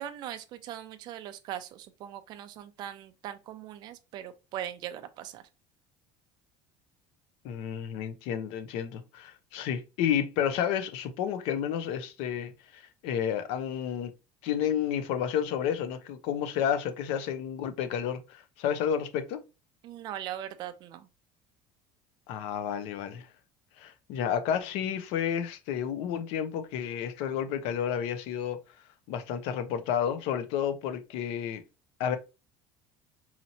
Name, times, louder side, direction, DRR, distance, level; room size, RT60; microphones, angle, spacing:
voice 1, 0.0-5.4 19.8-21.1, right 11 dB, 40° right, 0.4 m, -40 dB
voice 2, 7.4-14.1 14.4-19.4 22.3-23.3 23.8-28.6 29.1-31.6 32.0-32.2, left 8 dB, 65° left, 0.6 m, -31 dB
4.2 x 2.9 x 2.7 m
cardioid pair, 175°, 11 cm